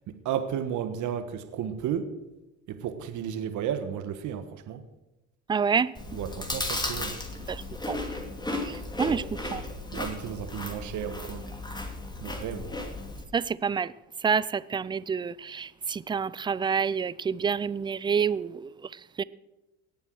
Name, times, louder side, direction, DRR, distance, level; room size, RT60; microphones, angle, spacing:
voice 1, 0.1-2.1 2.7-4.8 6.1-7.2 9.0-9.2 9.9-11.5 12.2-12.7, right 9 dB, 55° right, 1.5 m, -33 dB
voice 2, 5.5-5.9 7.5-8.0 8.6-9.6 13.3-13.9 14.2-19.2, right 6 dB, 15° right, 0.3 m, -28 dB
Chewing mastication, 5.9-13.2, left 2 dB, 10° left, 2.6 m, -35 dB
18.5 x 7.3 x 6.4 m
supercardioid pair, 95°, 35 cm